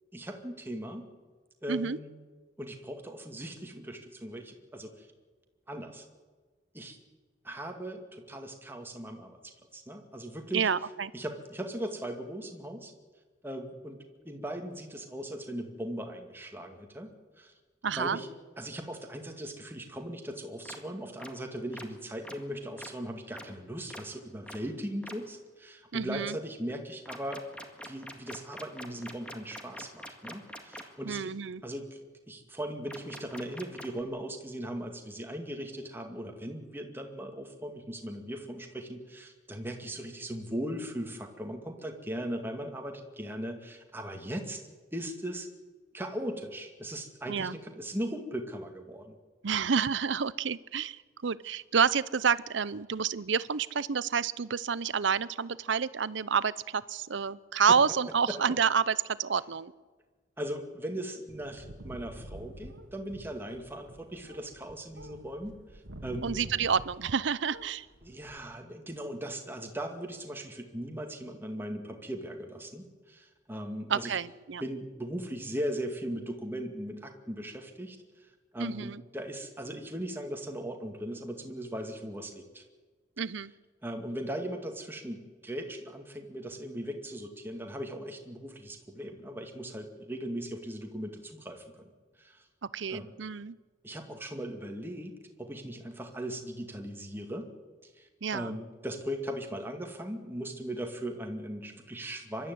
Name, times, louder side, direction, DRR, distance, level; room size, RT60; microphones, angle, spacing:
voice 1, 0.1-1.1 1.6-2.1 2.6-5.1 5.7-6.1 6.7-7.0 7.4-10.7 11.1-12.9 13.4-14.0 14.2-17.5 17.9-18.3 18.6-27.4 27.8-31.3 31.6-32.0 32.3-44.6 44.9-45.5 45.9-49.2 57.7-57.8 58.3-58.4 60.4-66.4 68.0-74.2 74.6-78.3 78.5-82.6 83.8-91.9 92.2-92.4 92.9-93.1 93.8-95.1 95.4-97.5 98.0-102.5, right 1 dB, 10° right, 3 dB, 2.2 m, -38 dB
voice 2, 1.7-2.0 10.5-11.1 17.8-18.2 25.9-26.4 31.0-31.6 47.3-47.6 49.4-59.7 66.2-67.9 73.9-74.6 78.6-79.0 83.2-83.5 92.7-93.6 98.2-98.5, right 6 dB, 70° right, 18 dB, 0.6 m, -29 dB
sound 1, 20.7-20.8 21.2-21.3 21.7-21.9 22.2-22.4 22.8-22.9 23.3-23.5 23.9-24.0 24.5-24.6 25.0-25.1 27.1-30.8 32.9-34.0, equal, 5° left, 2.0 m, -43 dB
sound 2, 61.3-67.2 67.5-68.4, right 1 dB, 85° right, 1.9 m, -47 dB
24.5 x 12.5 x 9.5 m, 1.4 s
head